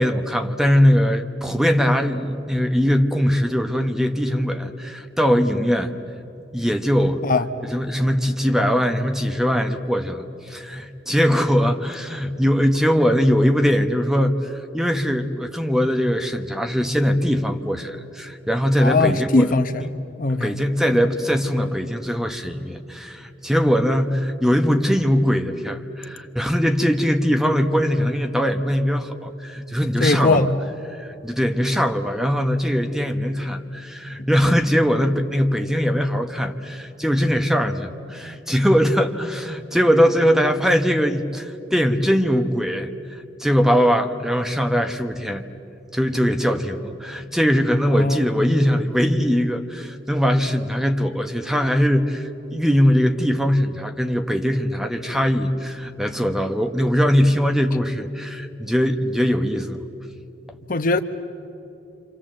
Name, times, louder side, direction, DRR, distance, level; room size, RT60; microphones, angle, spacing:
voice 1, 0.0-5.9 6.5-7.2 7.6-19.5 20.4-30.5 30.9-45.4 45.9-59.8, equal, 5° right, 6 dB, 1.1 m, -21 dB
voice 2, 18.8-19.9 20.2-20.6 20.9-21.0 30.0-30.6 47.9-48.2 60.7-61.0, left 3 dB, 50° left, 10 dB, 0.9 m, -20 dB
28.5 x 26.5 x 7.6 m, 2.8 s
head